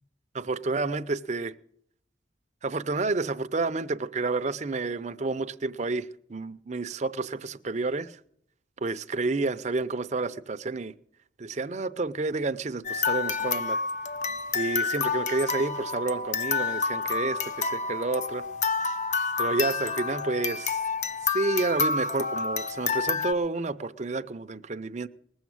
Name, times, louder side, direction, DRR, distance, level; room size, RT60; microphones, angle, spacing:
voice 1, 0.3-1.5 2.6-8.2 8.8-10.9 11.4-13.8 14.5-18.4 19.4-20.8 21.3-25.1, right 3 dB, 40° right, 0.6 m, -30 dB
sound 1, 12.8-23.3, left 5 dB, 40° left, 0.6 m, -29 dB
20.0 x 7.2 x 7.8 m
head